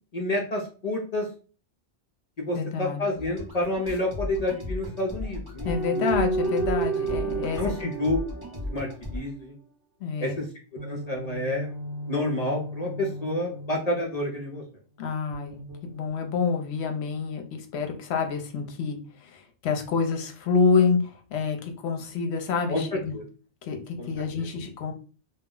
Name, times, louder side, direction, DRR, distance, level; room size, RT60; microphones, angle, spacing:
voice 1, 0.1-1.3 2.4-6.0 7.6-8.2 8.7-9.5 10.2-10.5 10.8-11.8 12.1-14.6 22.7-22.8 23.1-23.2 24.0-24.1 24.4-24.5, left 1 dB, 45° left, 0 dB, 0.5 m, -29 dB
voice 2, 2.5-3.0 5.6-7.9 10.0-10.3 15.0-15.6 15.9-23.1 23.6-24.9, left 5 dB, 70° left, 4 dB, 0.9 m, -27 dB
sound 1, 3.2-9.2, left 1 dB, 25° right, 0.7 m, -36 dB
sound 2, 5.7-9.3 10.8-14.5 15.3-16.5, right 3 dB, 55° right, 0.7 m, -32 dB
2.3 x 2.0 x 3.7 m, 0.37 s
omnidirectional pair, 1.2 m